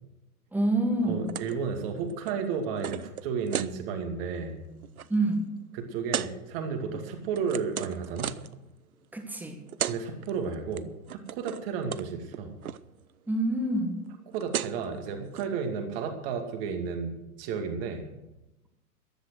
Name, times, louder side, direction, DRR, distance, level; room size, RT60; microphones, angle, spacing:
voice 1, 0.5-1.3 5.1-5.5 9.1-9.6 13.3-14.0, right 2 dB, 5° right, 5 dB, 1.6 m, -27 dB
voice 2, 1.1-4.6 5.7-8.3 9.9-12.6 14.3-18.1, right 5 dB, 40° right, 5 dB, 2.3 m, -33 dB
sound 1, 1.3-1.6 1.9-3.7 4.2-4.5 4.7-5.1 6.1-6.3 6.9-8.6 9.4-9.5 9.7-10.0 10.3-10.8 11.1-11.7 11.9-12.1 12.3-12.8 14.1-14.2 14.3-14.9 15.3-15.5, right 9 dB, 70° right, 0.7 m, -34 dB
14.5 x 10.5 x 6.3 m, 0.95 s
figure-of-eight pair, 100°, 44 cm